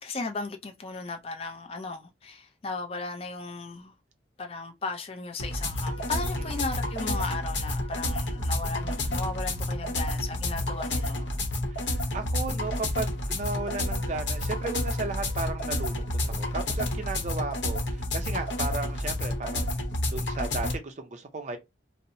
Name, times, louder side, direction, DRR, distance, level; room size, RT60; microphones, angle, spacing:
voice 1, 0.0-3.9 4.4-11.4, left 3 dB, 30° left, 0.4 m, -36 dB
sound 1, 5.4-20.8, left 1 dB, 75° left, 0.8 m, -30 dB
voice 2, 11.7-16.1 16.4-19.8 20.1-21.6, right 3 dB, 40° right, 0.4 m, -35 dB
2.8 x 2.0 x 2.6 m
head